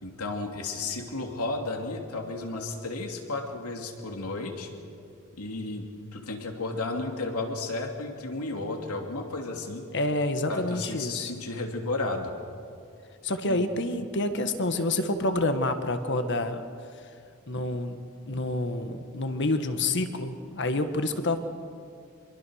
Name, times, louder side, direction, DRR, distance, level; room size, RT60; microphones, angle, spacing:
voice 1, 0.0-4.7 5.4-9.9 10.5-12.3 13.5-13.6, left 2 dB, 85° left, 3 dB, 2.9 m, -33 dB
voice 2, 9.9-11.3 13.2-16.6 17.5-18.0 18.3-21.4, left 2 dB, 55° left, 8 dB, 1.6 m, -28 dB
26.0 x 22.5 x 6.5 m, 2.4 s
head